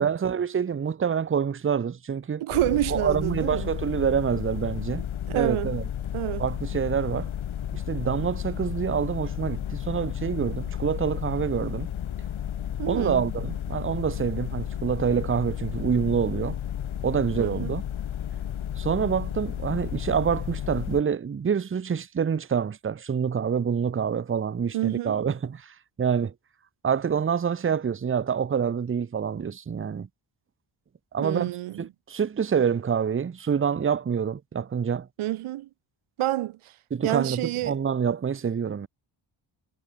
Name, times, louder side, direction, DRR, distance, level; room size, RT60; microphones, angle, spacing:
voice 1, 0.0-2.4 2.9-5.0 5.3-5.8 6.4-7.3 7.7-11.9 12.9-16.6 17.0-17.8 18.8-26.3 26.8-30.1 31.1-31.5 31.8-35.1 36.9-38.9, right 7 dB, 25° right, 0.7 m, -26 dB
voice 2, 2.4-3.7 5.3-5.8 6.1-6.5 12.8-13.2 17.4-17.7 24.7-25.2 31.2-31.9 35.2-35.7 36.2-36.7 37.0-37.8, right 15 dB, 90° right, 0.7 m, -28 dB
sound 1, 2.5-21.0, left 10 dB, 75° left, 2.2 m, -33 dB
wide cardioid pair, 180°, 48 cm